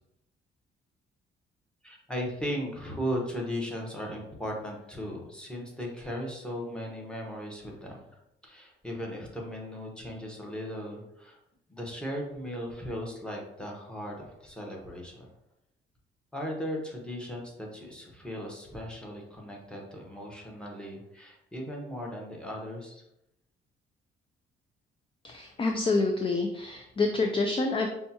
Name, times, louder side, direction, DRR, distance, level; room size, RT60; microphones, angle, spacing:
voice 1, 1.8-8.0 8.4-11.4 11.7-15.3 16.3-23.0, equal, 5° left, -1 dB, 1.0 m, -37 dB
voice 2, 25.2-27.9, left 3 dB, 25° left, 4 dB, 0.4 m, -27 dB
5.3 x 2.3 x 2.8 m, 0.83 s
cardioid pair, 90°, 20 cm